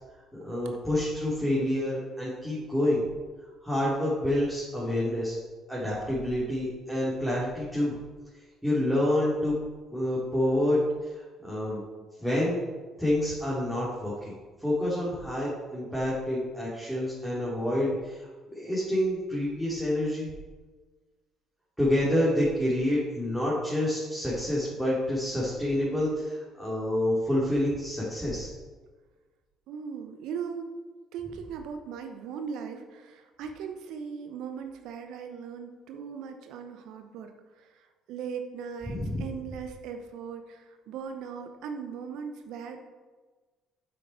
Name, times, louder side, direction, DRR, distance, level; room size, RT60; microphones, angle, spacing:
voice 1, 0.3-3.0 3.6-5.3 5.7-7.9 8.6-9.5 9.9-10.8 11.4-11.8 12.2-12.6 13.0-14.3 14.6-20.3 21.8-28.5 38.9-39.2, left 1 dB, ahead, -8 dB, 2.9 m, -28 dB
voice 2, 29.7-30.7 31.1-42.8, right 6 dB, 65° right, 6 dB, 0.8 m, -39 dB
7.9 x 6.3 x 4.5 m, 1.3 s
hypercardioid pair, 55°, 0 cm